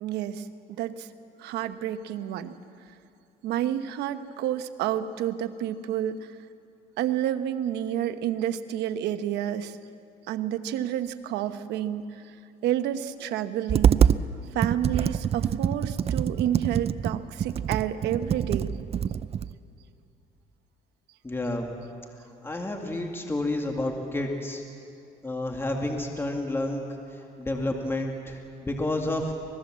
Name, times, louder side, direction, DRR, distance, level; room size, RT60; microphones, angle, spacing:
voice 1, 0.0-1.1 1.4-2.5 3.4-6.3 7.0-9.8 10.3-12.3 12.6-14.1 14.5-18.7, right 11 dB, 85° right, 10 dB, 1.1 m, -29 dB
Computer keyboard, 13.7-14.2 14.6-19.5, right 8 dB, 35° right, 0.5 m, -25 dB
voice 2, 21.2-21.7 22.4-24.6 25.2-26.8 27.4-29.3, left 1 dB, 15° left, 2 dB, 2.2 m, -30 dB
25.5 x 20.0 x 7.5 m, 2.5 s
cardioid pair, 110°, 17 cm